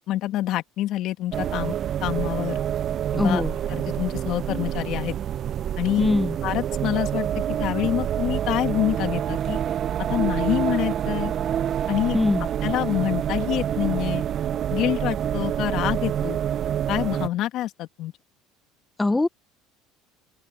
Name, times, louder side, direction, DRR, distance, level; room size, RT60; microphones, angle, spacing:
voice 1, 0.1-1.7 2.0-2.6 3.1-3.4 3.7-5.2 5.8-6.1 6.4-9.6 10.1-11.3 11.9-12.2 12.6-14.2 14.7-16.4 16.9-18.1, left 14 dB, 60° left, 2.1 m, -26 dB
sound 1, 1.3-17.3, right 10 dB, 50° right, 0.5 m, -27 dB
voice 2, 3.2-3.6 6.0-6.4 12.1-12.5 19.0-19.3, left 2 dB, 10° left, 0.5 m, -21 dB
open air
supercardioid pair, 90°, 0 cm